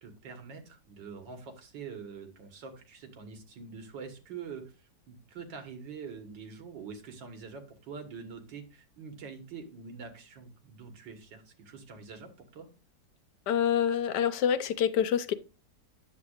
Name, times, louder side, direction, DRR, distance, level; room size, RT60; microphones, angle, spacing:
voice 1, 0.0-12.7, right 5 dB, 90° right, 2.1 m, -45 dB
voice 2, 13.5-15.3, left 9 dB, 75° left, 1.2 m, -26 dB
9.4 x 7.5 x 2.4 m
omnidirectional pair, 1.9 m